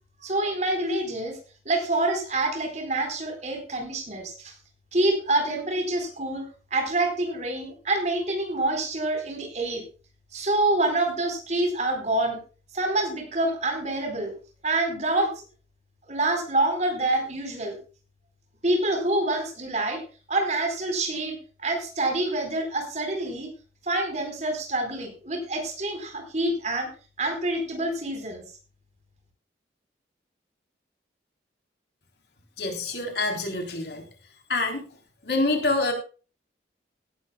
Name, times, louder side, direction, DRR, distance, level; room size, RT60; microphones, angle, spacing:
voice 1, 0.2-1.4 1.6-4.5 4.9-9.8 10.3-12.4 12.7-14.3 14.6-15.3 16.1-17.8 18.6-20.0 20.3-23.5 23.8-26.9 27.2-28.4, right 2 dB, 40° right, 5 dB, 4.3 m, -26 dB
voice 2, 32.6-34.0 34.5-34.8 35.2-35.9, left 2 dB, 65° left, 3 dB, 3.6 m, -26 dB
17.5 x 12.0 x 2.3 m, 0.36 s
head